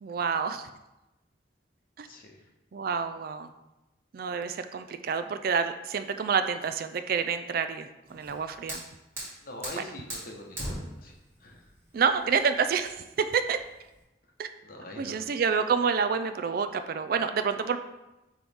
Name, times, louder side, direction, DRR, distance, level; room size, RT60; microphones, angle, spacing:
voice 1, 0.0-0.7 2.0-2.1 2.7-3.5 4.1-8.8 9.8-9.9 11.9-13.6 14.4-14.5 15.0-17.8, right 6 dB, 50° right, 9 dB, 0.3 m, -28 dB
Fire, 8.1-14.0, equal, 15° right, 1.8 m, -41 dB
voice 2, 9.4-11.1 11.4-11.6 14.6-15.2, left 1 dB, 50° left, 0 dB, 1.0 m, -43 dB
9.2 x 3.1 x 3.5 m, 0.99 s
head